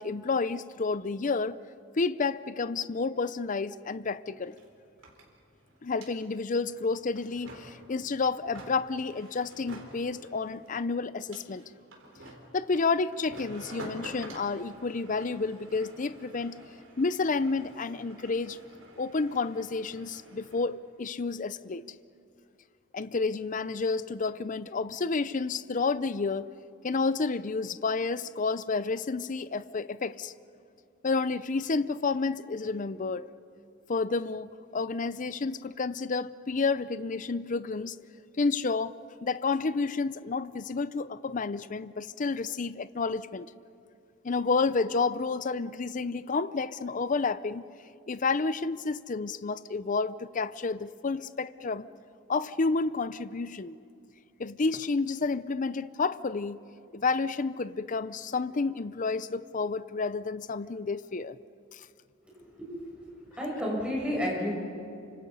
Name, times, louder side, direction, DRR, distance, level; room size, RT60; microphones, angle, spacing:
voice 1, 0.0-1.6 2.0-4.5 5.8-11.6 12.5-16.6 17.0-18.6 19.0-21.8 22.9-26.5 26.8-30.3 31.0-33.3 33.9-38.0 38.4-38.9 39.2-43.5 44.2-47.6 48.1-51.9 52.3-53.7 54.4-56.6 56.9-61.4 61.7-61.9, left 4 dB, 40° left, 0.6 m, -30 dB
sound 1, 3.8-3.9 4.1-20.7, right 1 dB, 85° right, 4.3 m, -49 dB
voice 2, 62.4-64.5, equal, 5° right, 7.7 m, -32 dB
29.0 x 26.0 x 5.5 m
head